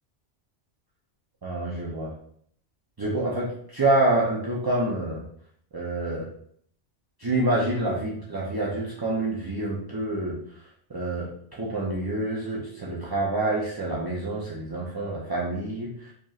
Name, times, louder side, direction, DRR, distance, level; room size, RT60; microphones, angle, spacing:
voice 1, 1.4-2.1 3.0-5.3 5.7-6.3 7.2-10.4 10.9-16.1, right 2 dB, 30° right, -6 dB, 0.5 m, -27 dB
5.0 x 3.0 x 2.4 m, 0.63 s
omnidirectional pair, 1.2 m